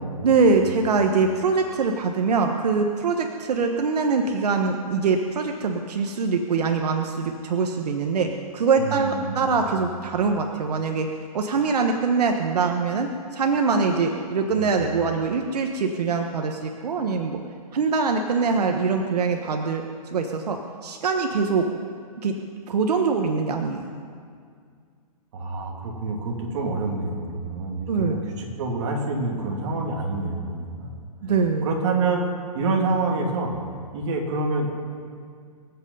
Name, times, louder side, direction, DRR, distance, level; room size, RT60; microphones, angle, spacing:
voice 1, 0.2-11.1 11.3-17.4 17.7-19.8 20.1-21.7 22.2-22.3 22.7-23.9 27.9-28.2 31.2-31.7, right 4 dB, 85° right, 4 dB, 1.2 m, -23 dB
voice 2, 8.8-9.6 14.5-14.7 25.3-31.0 31.6-32.2 32.5-33.5 33.9-34.7, right 3 dB, 45° right, 0 dB, 2.8 m, -27 dB
24.5 x 8.3 x 5.5 m, 2.2 s
hypercardioid pair, 165°, 20 cm